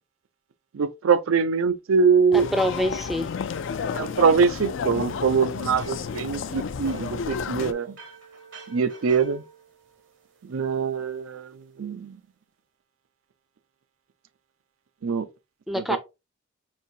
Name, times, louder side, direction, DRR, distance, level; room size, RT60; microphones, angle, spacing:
voice 1, 0.7-2.5 3.9-8.0 8.7-9.4 10.4-12.2 15.0-15.3 15.7-16.0, right 5 dB, 85° right, 0.5 m, -23 dB
sound 1, 2.3-7.7, left 6 dB, 65° left, 0.4 m, -31 dB
voice 2, 2.3-3.3 15.7-16.0, equal, ahead, 0.4 m, -25 dB
sound 2, 5.8-10.7, right 4 dB, 65° right, 0.8 m, -49 dB
5.3 x 2.7 x 2.7 m
head